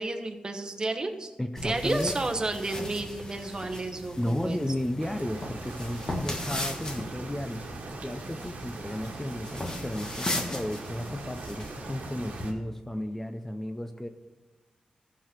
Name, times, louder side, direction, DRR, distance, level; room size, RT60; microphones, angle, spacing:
voice 1, 0.0-1.3 1.6-4.6, right 2 dB, 30° right, 5 dB, 1.1 m, -31 dB
voice 2, 1.4-2.2 4.2-7.7 8.0-14.1, left 1 dB, 10° left, 7 dB, 0.5 m, -33 dB
sound 1, 1.6-12.5, left 1 dB, 30° left, 1.5 m, -38 dB
sound 2, 5.0-12.5, right 4 dB, 85° right, 1.3 m, -42 dB
14.0 x 5.9 x 6.0 m, 1.2 s
wide cardioid pair, 95°, 3 cm